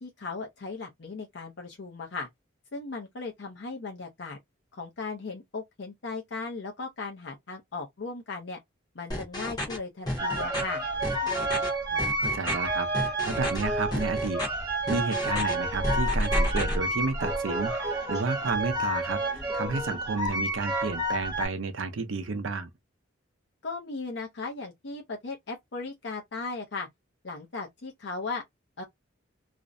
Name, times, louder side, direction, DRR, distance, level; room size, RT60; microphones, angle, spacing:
voice 1, 0.0-2.3 2.7-4.4 4.7-8.6 8.9-10.8 23.6-26.9 27.2-28.4 28.8-28.9, left 3 dB, 60° left, 0.5 m, -37 dB
sound 1, 9.1-9.8 10.1-10.6 11.0-11.7 12.0-12.5 12.9-13.6 13.9-14.5 14.9-15.5 15.8-16.7, left 1 dB, 20° left, 0.7 m, -32 dB
sound 2, 10.2-21.5, right 1 dB, 20° right, 0.8 m, -29 dB
voice 2, 11.9-14.4 14.9-22.7, right 4 dB, 80° right, 0.5 m, -32 dB
2.5 x 2.0 x 2.5 m
head